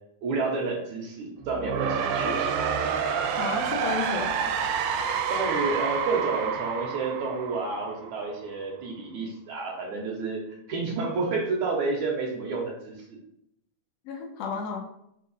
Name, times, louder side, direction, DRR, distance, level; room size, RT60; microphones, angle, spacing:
voice 1, 0.2-2.5 5.3-13.2, right 3 dB, 65° right, -1 dB, 2.0 m, -30 dB
sound 1, 1.4-8.4, right 7 dB, 80° right, 2.3 m, -28 dB
voice 2, 3.4-4.5 14.0-14.8, left 5 dB, 85° left, 0 dB, 1.4 m, -32 dB
5.8 x 3.7 x 5.5 m, 0.75 s
omnidirectional pair, 4.2 m